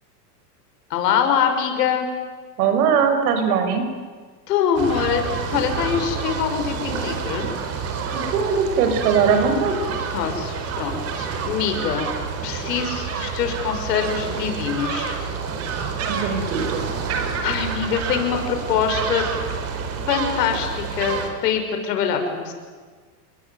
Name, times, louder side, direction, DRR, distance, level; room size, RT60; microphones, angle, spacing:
voice 1, 0.9-2.1 4.5-7.5 10.1-12.1 12.4-15.1 17.4-19.3 20.1-22.5, left 7 dB, 75° left, 6 dB, 6.2 m, -24 dB
voice 2, 2.6-3.8 8.1-9.8 16.0-16.9, right 6 dB, 65° right, 7 dB, 6.1 m, -20 dB
sound 1, 4.7-21.3, right 5 dB, 30° right, 4.4 m, -28 dB
29.5 x 21.5 x 9.5 m, 1.5 s
supercardioid pair, 145°, 49 cm